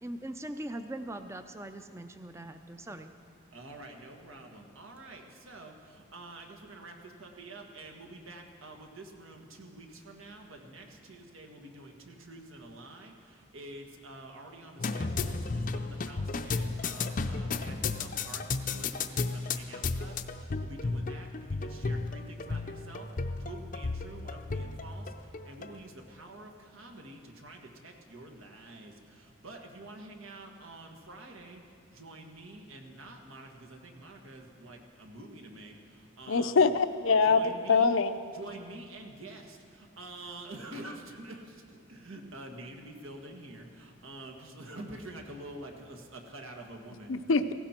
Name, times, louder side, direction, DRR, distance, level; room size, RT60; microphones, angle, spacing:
voice 1, 0.0-3.1, right 1 dB, 15° right, 8 dB, 0.5 m, -41 dB
voice 2, 3.5-36.6 37.2-37.9 38.3-47.2, right 2 dB, 85° right, 3 dB, 1.7 m, -47 dB
sound 1, 14.8-25.7, left 3 dB, 40° left, 0.5 m, -34 dB
voice 3, 36.3-37.4 37.7-38.2 47.1-47.5, left 4 dB, 80° left, 10 dB, 0.6 m, -24 dB
17.5 x 16.0 x 4.4 m, 2.3 s
head